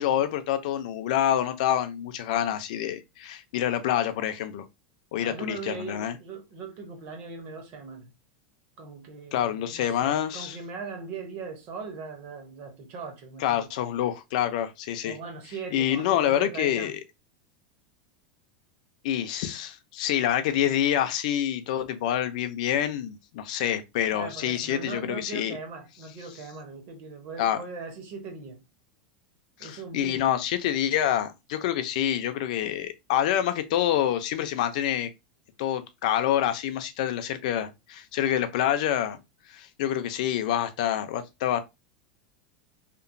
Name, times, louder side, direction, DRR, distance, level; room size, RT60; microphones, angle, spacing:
voice 1, 0.0-4.6 5.1-6.1 9.3-10.6 13.4-15.2 15.7-16.9 19.0-25.6 27.4-27.6 29.6-35.1 35.6-39.2 39.5-41.6, left 11 dB, 55° left, 0.4 m, -27 dB
voice 2, 5.2-8.1 8.8-13.7 15.0-17.0 24.1-28.6 29.6-30.4, right 4 dB, 35° right, 0.6 m, -40 dB
2.9 x 2.0 x 2.5 m
supercardioid pair, 180°, 5 cm